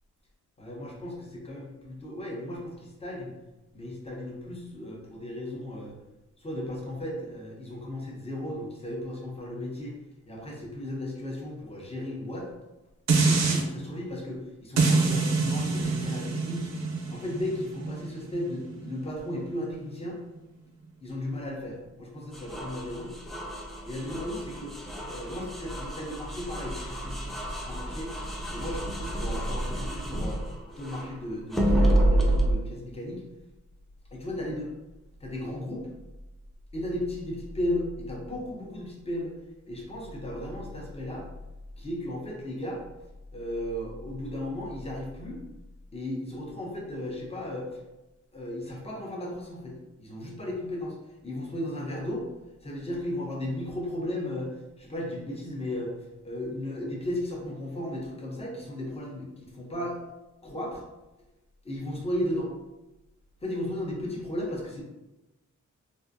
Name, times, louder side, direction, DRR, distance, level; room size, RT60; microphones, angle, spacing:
voice 1, 0.6-3.3 3.7-6.0 6.4-9.9 10.3-12.5 13.2-16.7 17.1-20.2 21.0-23.1 23.5-24.7 25.1-28.2 28.5-30.4 30.8-33.2 34.1-34.7 35.2-35.9 36.7-39.4 39.7-41.3 41.8-42.8 43.3-45.4 45.9-47.8 48.3-52.3 52.6-60.0 60.4-60.8 61.6-62.5 63.4-64.8, left 1 dB, 20° left, -2 dB, 0.7 m, -35 dB
sound 1, 13.1-13.6 14.8-19.9 20.4-20.5, right 4 dB, 65° right, 0.6 m, -26 dB
sound 2, 22.3-31.1 31.5-32.5, right 1 dB, ahead, 0.3 m, -29 dB
3.5 x 2.5 x 2.6 m, 1.0 s
wide cardioid pair, 155°, 30 cm